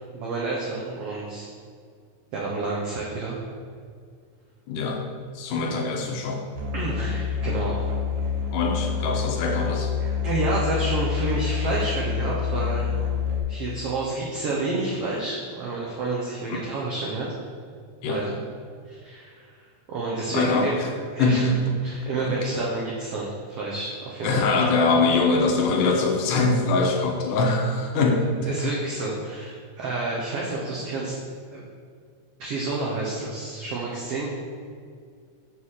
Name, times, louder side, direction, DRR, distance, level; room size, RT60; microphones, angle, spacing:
voice 1, 0.1-1.5 2.3-3.4 6.7-7.8 10.2-12.9 13.5-17.3 18.1-18.4 18.9-19.5 19.9-20.8 21.1-21.5 21.8-24.5 28.4-31.1 31.5-31.6 32.4-34.3, right 3 dB, 85° right, -4 dB, 1.3 m, -29 dB
voice 2, 4.7-5.1 5.4-6.5 8.5-9.9 16.5-16.6 18.0-18.3 20.3-20.9 21.2-22.6 24.2-28.8, left 3 dB, 75° left, 2 dB, 2.1 m, -23 dB
Musical instrument, 6.5-13.4, left 7 dB, 70° right, 2.1 m, -27 dB
6.8 x 3.6 x 6.4 m, 2.2 s
omnidirectional pair, 3.9 m